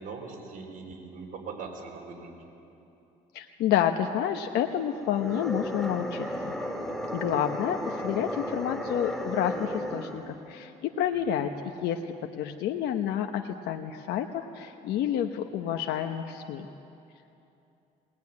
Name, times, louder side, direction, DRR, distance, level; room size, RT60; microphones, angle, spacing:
voice 1, 0.0-2.3, right 4 dB, 55° right, 0 dB, 4.5 m, -41 dB
voice 2, 3.3-6.5 7.1-16.7, left 9 dB, 80° left, 5 dB, 1.1 m, -29 dB
sound 1, 5.0-10.3, equal, 5° left, 2.1 m, -34 dB
21.5 x 18.5 x 9.6 m, 2.8 s
cardioid pair, 110°, 17 cm